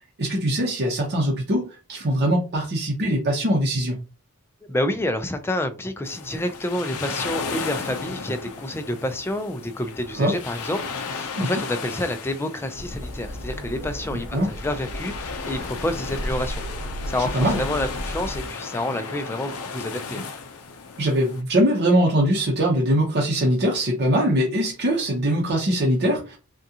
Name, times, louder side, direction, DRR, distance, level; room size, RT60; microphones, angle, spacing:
voice 1, 0.2-4.0 10.2-10.3 11.3-11.5 14.1-14.5 17.3-17.6 21.0-26.4, right 1 dB, 50° right, 0.7 m, -22 dB
voice 2, 4.7-16.6 17.1-20.2, left 1 dB, 10° left, 0.4 m, -28 dB
Beach Waves Close, 6.0-21.4, left 5 dB, 90° left, 0.6 m, -35 dB
sound 1, 12.7-18.5, equal, 15° right, 0.9 m, -34 dB
3.6 x 2.3 x 2.7 m
head